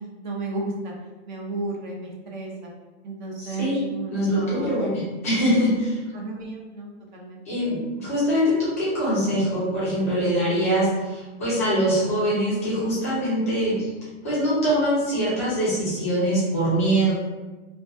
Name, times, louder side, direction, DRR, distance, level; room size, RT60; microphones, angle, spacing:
voice 1, 0.2-0.9 1.3-2.7 3.0-4.8 5.6-5.7 6.1-7.4, right 2 dB, 40° right, -1 dB, 0.5 m, -33 dB
voice 2, 3.4-3.8 4.1-6.0 7.5-13.9 14.2-17.1, equal, 15° left, -10 dB, 0.3 m, -23 dB
2.2 x 2.1 x 2.6 m, 1.2 s
hypercardioid pair, 160°, 36 cm